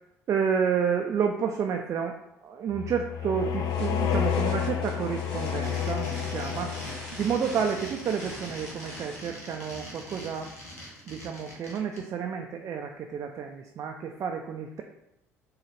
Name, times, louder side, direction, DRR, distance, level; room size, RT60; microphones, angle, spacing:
voice 1, 0.3-2.1 2.4-6.7 7.2-10.5 11.1-14.8, right 7 dB, 40° right, 3 dB, 0.3 m, -30 dB
sound 1, 2.7-7.3, left 9 dB, 50° left, 0.3 m, -30 dB
sound 2, 3.6-9.2, equal, 5° left, 1.5 m, -46 dB
sound 3, 5.3-12.0, equal, 85° left, 0.7 m, -42 dB
3.8 x 2.3 x 3.2 m, 0.85 s
figure-of-eight pair, 55°, 8 cm